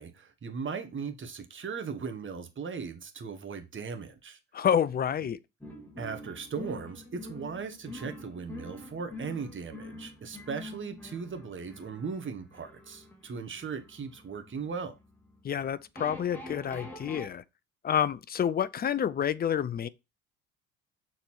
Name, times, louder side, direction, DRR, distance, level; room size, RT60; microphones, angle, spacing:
voice 1, 0.0-4.4 6.0-15.0, right 5 dB, 30° right, 1.7 m, -38 dB
voice 2, 4.5-5.4 15.4-17.4 17.8-19.9, left 9 dB, 25° left, 0.6 m, -28 dB
sound 1, 5.6-17.3, left 1 dB, 5° left, 2.3 m, -46 dB
6.9 x 4.1 x 4.7 m
figure-of-eight pair, 55°, 41 cm